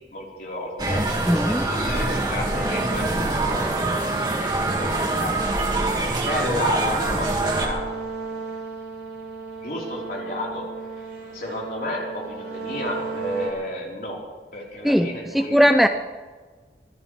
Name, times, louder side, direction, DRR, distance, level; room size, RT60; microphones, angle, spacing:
voice 1, 0.1-1.0 1.5-5.4 6.3-7.8 9.6-10.6 11.0-11.1 11.3-14.2 14.5-15.7, left 1 dB, 55° left, -4 dB, 4.6 m, -32 dB
sound 1, 0.8-7.7, right 2 dB, 25° right, 2.3 m, -24 dB
voice 2, 1.3-1.6 14.8-15.1 15.3-15.9, equal, ahead, 7 dB, 0.5 m, -18 dB
sound 2, 2.5-13.5, right 4 dB, 70° right, 4.4 m, -35 dB
24.5 x 14.5 x 3.5 m, 1.4 s
head